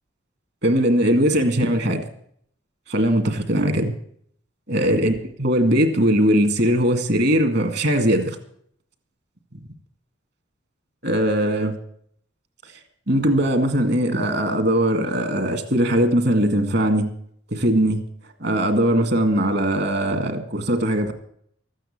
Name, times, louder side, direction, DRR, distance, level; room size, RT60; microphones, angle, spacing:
voice 1, 0.6-2.0 2.9-3.9 4.7-8.4 11.0-11.8 13.1-17.1 17.5-18.0 18.4-21.1, right 1 dB, 55° right, 7 dB, 2.1 m, -20 dB
14.0 x 9.0 x 8.6 m, 0.66 s
head